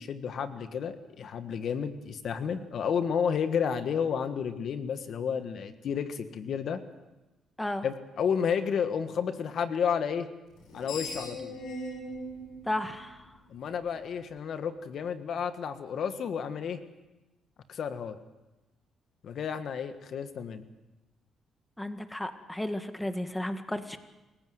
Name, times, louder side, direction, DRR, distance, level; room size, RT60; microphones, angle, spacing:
voice 1, 0.0-6.8 7.8-10.3 10.7-11.6 13.5-16.8 17.7-18.2 19.2-20.6, left 7 dB, 65° left, 9 dB, 1.5 m, -31 dB
Screech, 10.5-13.8, left 1 dB, 85° left, 6.7 m, -40 dB
voice 2, 12.7-13.3 21.8-24.0, left 1 dB, 10° left, 8 dB, 1.7 m, -33 dB
27.0 x 15.5 x 7.8 m, 1.1 s
cardioid pair, 90°, 0 cm